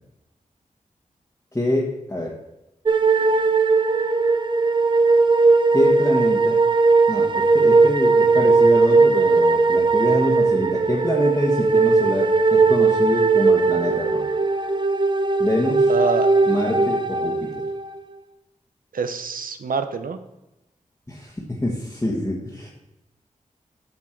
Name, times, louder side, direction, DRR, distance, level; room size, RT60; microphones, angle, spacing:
voice 1, 1.5-2.4 5.7-6.6 7.1-14.3 15.4-15.9 16.5-17.7 21.1-22.7, left 1 dB, 20° left, -3 dB, 1.4 m, -25 dB
sound 1, 2.9-18.0, right 3 dB, 35° right, 0.6 m, -18 dB
voice 2, 15.9-16.3 18.9-20.2, right 5 dB, 80° right, 8 dB, 0.7 m, -25 dB
8.6 x 6.2 x 4.5 m, 0.94 s
wide cardioid pair, 65°, 14 cm